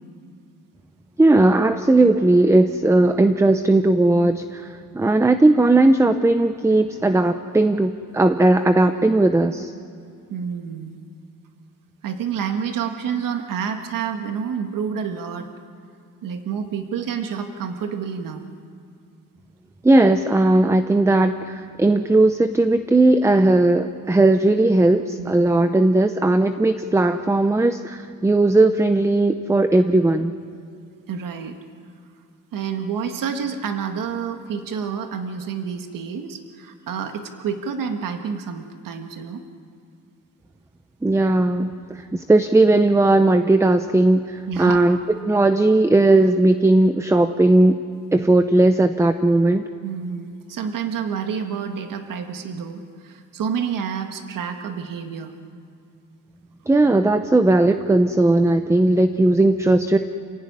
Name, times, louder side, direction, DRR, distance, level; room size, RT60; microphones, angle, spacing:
voice 1, 1.2-9.7 19.8-30.3 41.0-45.0 45.2-47.8 48.1-49.6 56.7-60.0, right 2 dB, 10° right, 9 dB, 0.7 m, -17 dB
voice 2, 10.3-11.0 12.0-15.5 16.2-18.4 25.2-25.5 31.1-31.6 32.5-39.4 44.5-44.8 49.8-55.3, right 7 dB, 70° right, 5 dB, 1.8 m, -29 dB
28.5 x 16.0 x 9.7 m, 2.4 s
cardioid pair, 135°, 34 cm